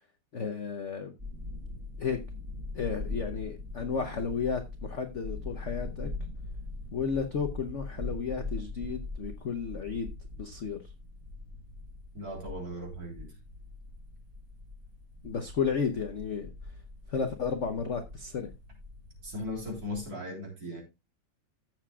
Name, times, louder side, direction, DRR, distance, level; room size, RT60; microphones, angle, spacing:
voice 1, 0.3-1.1 2.0-2.2 2.7-6.1 6.9-10.1 10.4-10.8 15.2-16.5 17.1-18.5, left 6 dB, 50° left, 6 dB, 0.9 m, -33 dB
sound 1, 1.2-20.0, left 2 dB, 25° right, 4.4 m, -42 dB
voice 2, 12.1-13.3 19.2-20.8, left 1 dB, 45° right, 1 dB, 3.9 m, -38 dB
14.5 x 7.6 x 2.3 m, 0.24 s
omnidirectional pair, 2.2 m